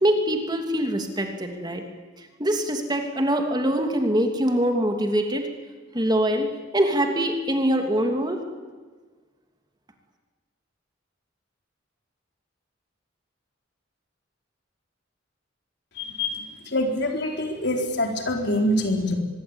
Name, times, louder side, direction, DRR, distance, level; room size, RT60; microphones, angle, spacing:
voice 1, 0.0-1.8 2.4-5.5 5.9-8.4, right 1 dB, 20° right, 4 dB, 2.9 m, -23 dB
voice 2, 16.0-19.1, left 1 dB, 60° left, 3 dB, 4.3 m, -25 dB
24.5 x 22.0 x 9.0 m, 1.4 s
head